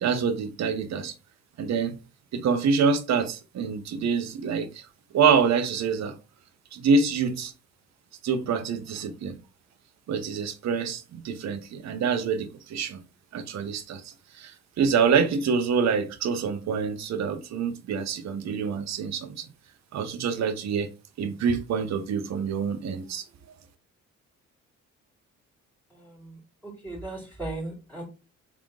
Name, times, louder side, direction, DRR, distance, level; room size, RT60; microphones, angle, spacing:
voice 1, 0.0-1.1 1.6-2.0 2.3-4.9 5.1-6.1 6.7-7.5 8.2-9.4 10.1-13.0 13.3-19.5 19.9-23.6, right 5 dB, 60° right, 0.9 m, -26 dB
voice 2, 25.9-28.0, right 2 dB, 5° left, 2.4 m, -38 dB
3.6 x 3.6 x 3.7 m
cardioid pair, 90°, 30 cm